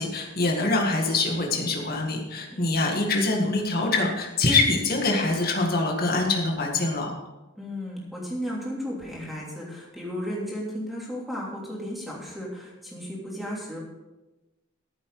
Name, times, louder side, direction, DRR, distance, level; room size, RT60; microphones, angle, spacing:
voice 1, 0.0-7.1, left 2 dB, 40° left, 0 dB, 1.9 m, -24 dB
voice 2, 2.5-3.1 7.6-13.8, equal, ahead, -4 dB, 3.0 m, -34 dB
14.0 x 7.5 x 4.9 m, 1.1 s
head